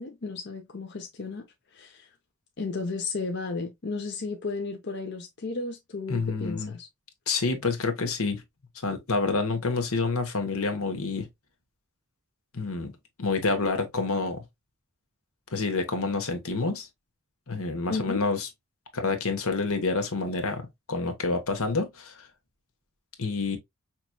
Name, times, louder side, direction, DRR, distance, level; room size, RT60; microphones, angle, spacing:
voice 1, 0.0-1.4 1.7-2.1 2.6-6.9 17.9-18.2, left 3 dB, 50° left, 0.7 m, -33 dB
voice 2, 6.1-6.7 7.3-8.4 8.8-11.3 12.5-14.4 15.5-16.9 17.5-18.5 18.9-22.3 23.2-23.6, left 3 dB, 80° left, 1.2 m, -28 dB
5.7 x 3.0 x 2.2 m
head